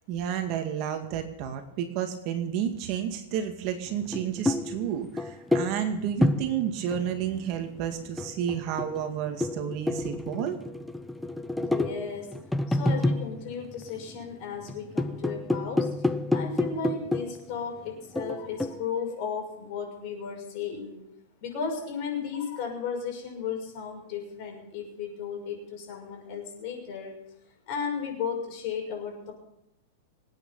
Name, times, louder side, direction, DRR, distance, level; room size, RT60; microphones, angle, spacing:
voice 1, 0.1-10.6, right 9 dB, 40° right, 6 dB, 2.0 m, -31 dB
sound 1, 4.0-7.5 8.0-14.2 14.6-17.6 18.2-18.9, left 2 dB, 5° left, 0.7 m, -29 dB
voice 2, 11.5-12.3 12.7-15.9 16.3-21.0 21.4-27.1 27.7-29.3, left 6 dB, 45° left, 1 dB, 6.2 m, -35 dB
26.0 x 9.2 x 5.5 m, 0.82 s
supercardioid pair, 155°, 0 cm